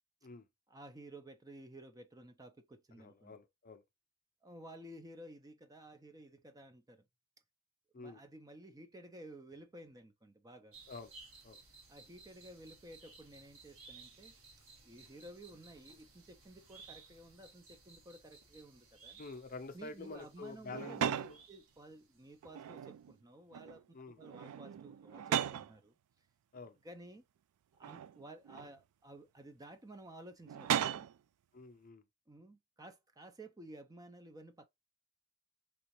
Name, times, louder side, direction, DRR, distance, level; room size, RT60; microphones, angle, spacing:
voice 1, 0.7-3.3 4.4-7.0 8.0-10.8 11.9-14.4 14.8-19.2 19.7-26.3 26.8-27.2 27.8-31.1 32.3-34.7, right 1 dB, 15° right, 0.4 m, -54 dB
voice 2, 3.0-3.8 7.9-8.2 10.9-11.1 11.4-11.6 19.2-21.4 23.9-24.2 26.5-26.8 31.5-32.0, left 4 dB, 40° left, 0.5 m, -48 dB
sound 1, 10.7-22.4 22.6-22.7, right 4 dB, 70° right, 1.5 m, -59 dB
sound 2, 20.7-21.4 22.4-23.1 23.5-23.8 24.2-25.7 26.6-26.7 27.8-28.7 30.4-31.2, right 9 dB, 90° right, 0.3 m, -37 dB
3.9 x 3.0 x 2.9 m
head